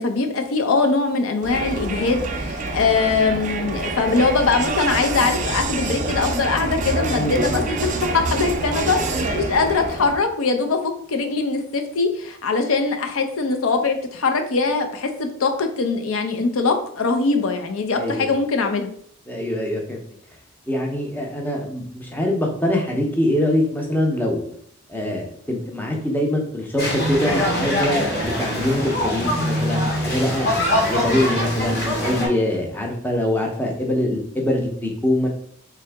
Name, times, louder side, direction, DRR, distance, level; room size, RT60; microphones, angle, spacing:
voice 1, 0.0-18.9, left 4 dB, 75° left, 6 dB, 0.5 m, -22 dB
Crowd, 1.4-10.3, right 3 dB, 35° right, 0.4 m, -26 dB
voice 2, 7.2-7.7 17.9-18.3 19.3-20.0 20.7-24.5 24.9-30.5 30.9-35.3, left 1 dB, 10° left, 0 dB, 0.6 m, -23 dB
sound 1, 26.8-32.3, left 1 dB, 45° left, 1.1 m, -23 dB
3.4 x 2.8 x 3.4 m, 0.64 s
head